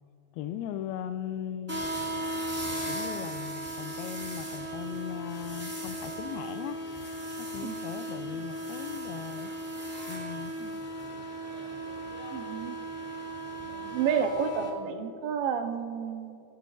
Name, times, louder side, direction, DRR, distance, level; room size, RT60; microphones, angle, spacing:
voice 1, 0.3-1.8 2.9-6.8 7.4-9.5 10.1-10.5, left 10 dB, 90° left, 11 dB, 2.5 m, -38 dB
sound 1, 1.7-14.7, right 1 dB, 5° right, 1.7 m, -37 dB
voice 2, 12.3-12.8 13.7-16.4, right 7 dB, 75° right, 5 dB, 2.6 m, -31 dB
28.0 x 11.5 x 2.6 m, 2.5 s
omnidirectional pair, 4.3 m